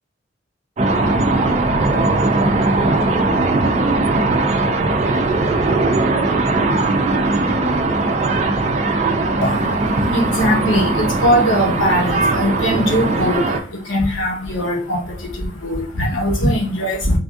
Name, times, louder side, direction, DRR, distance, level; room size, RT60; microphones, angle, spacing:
sound 1, 0.8-13.6, right 2 dB, 35° right, 0.4 m, -19 dB
voice 1, 9.4-17.2, equal, 85° left, -1 dB, 1.0 m, -20 dB
3.4 x 2.6 x 2.3 m, 0.40 s
head